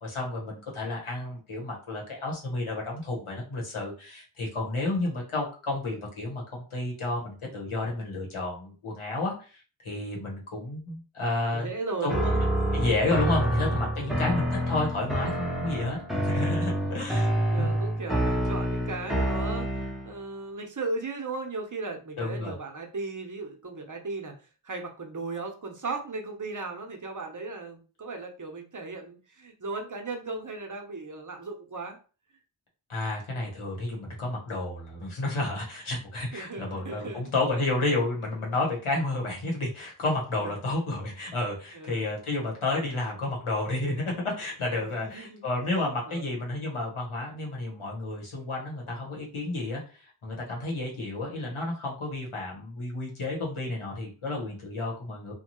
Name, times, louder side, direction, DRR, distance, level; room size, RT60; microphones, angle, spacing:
voice 1, 0.0-11.7 12.0-12.2 12.7-17.7 22.2-22.5 32.9-55.3, left 2 dB, 85° left, -1 dB, 1.0 m, -31 dB
voice 2, 11.5-13.0 14.0-14.5 16.6-17.1 17.5-24.3 24.6-32.0 36.3-37.2 40.4-40.6 41.7-42.1 44.8-46.3, right 3 dB, 40° right, 3 dB, 0.7 m, -37 dB
sound 1, 12.1-20.2, right 1 dB, ahead, 0.7 m, -27 dB
2.7 x 2.2 x 3.0 m, 0.35 s
wide cardioid pair, 50°, 49 cm